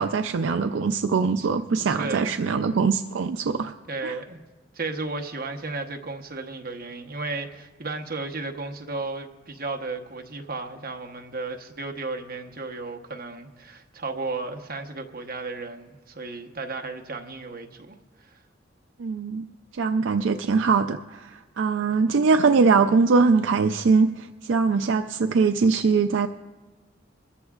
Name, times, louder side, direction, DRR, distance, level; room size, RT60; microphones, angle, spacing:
voice 1, 0.0-3.7 4.0-4.2 19.0-19.5 19.7-26.3, right 4 dB, 75° right, 8 dB, 0.4 m, -22 dB
voice 2, 1.6-2.4 3.9-4.4 4.7-17.9 18.2-18.4, right 3 dB, 50° right, 4 dB, 1.0 m, -34 dB
22.0 x 14.0 x 2.4 m, 1.2 s
head